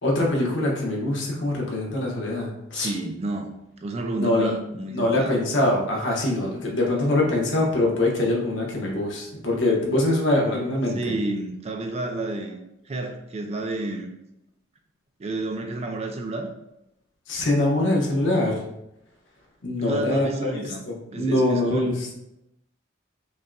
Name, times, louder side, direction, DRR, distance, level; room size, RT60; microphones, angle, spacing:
voice 1, 0.0-2.9 4.2-4.5 4.9-11.1 17.3-18.6 19.6-22.1, left 1 dB, 75° left, -1 dB, 1.0 m, -23 dB
voice 2, 2.7-5.4 10.9-14.2 15.2-16.5 19.8-20.8 21.1-21.9, right 2 dB, 35° right, 4 dB, 0.4 m, -30 dB
5.3 x 2.5 x 2.2 m, 0.85 s
head